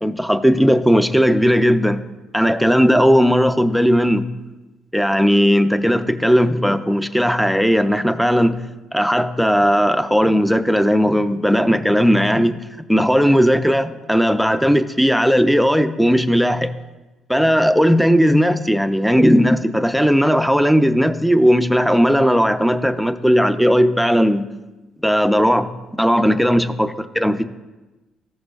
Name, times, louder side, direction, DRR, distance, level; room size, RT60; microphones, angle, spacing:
voice 1, 0.0-2.0 2.3-4.3 4.9-8.6 8.9-12.6 12.9-16.7 17.3-24.5 25.0-25.7 26.0-27.4, equal, ahead, 10 dB, 0.5 m, -16 dB
13.5 x 6.4 x 2.4 m, 1.1 s
cardioid pair, 85°, 0 cm